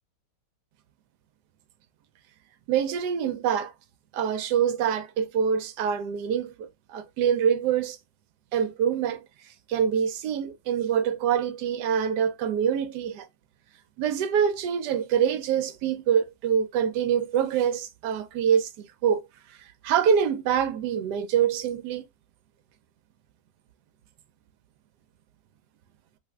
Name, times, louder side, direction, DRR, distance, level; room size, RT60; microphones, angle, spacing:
voice 1, 2.7-3.7 4.1-8.0 8.5-9.2 9.7-13.3 14.0-19.2 19.8-22.0, right 8 dB, 75° right, 1.2 m, -25 dB
3.3 x 3.3 x 2.3 m
omnidirectional pair, 1.9 m